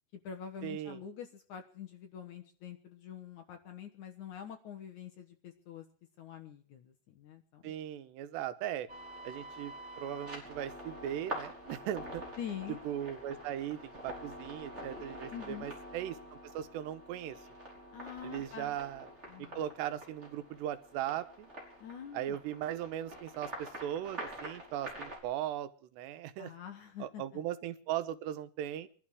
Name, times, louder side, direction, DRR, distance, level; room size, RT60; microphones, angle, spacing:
voice 1, 0.1-5.9 6.2-7.7 12.4-12.8 15.3-15.7 17.9-18.8 19.3-19.6 21.8-22.4 26.4-27.2, left 8 dB, 60° left, 5 dB, 2.2 m, -45 dB
voice 2, 0.6-1.0 7.6-8.9 9.2-9.7 10.0-12.2 12.9-16.1 16.5-17.4 18.2-19.1 19.4-21.5 22.1-26.5 27.0-28.9, right 11 dB, 90° right, 10 dB, 3.2 m, -38 dB
sound 1, 8.9-25.2, right 1 dB, 15° right, 5.4 m, -46 dB
22.5 x 12.0 x 4.9 m, 0.44 s
omnidirectional pair, 4.8 m